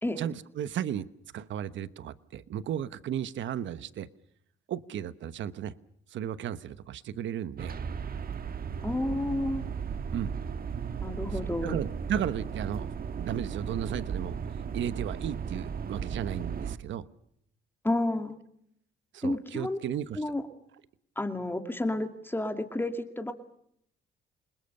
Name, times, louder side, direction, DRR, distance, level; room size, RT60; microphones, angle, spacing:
voice 1, 0.1-1.1 1.3-4.1 4.7-5.7 6.1-7.8 10.1-10.3 11.6-14.3 14.7-17.0 19.1-20.2, right 10 dB, 70° right, 15 dB, 1.1 m, -34 dB
sound 1, 7.6-16.8, right 6 dB, 50° right, 1.5 m, -35 dB
voice 2, 8.8-9.6 11.0-11.8 17.8-18.4 19.2-19.8 20.2-20.4 21.2-23.3, left 1 dB, 10° left, 6 dB, 2.6 m, -30 dB
28.5 x 20.5 x 6.7 m, 0.72 s
cardioid pair, 90°, 20 cm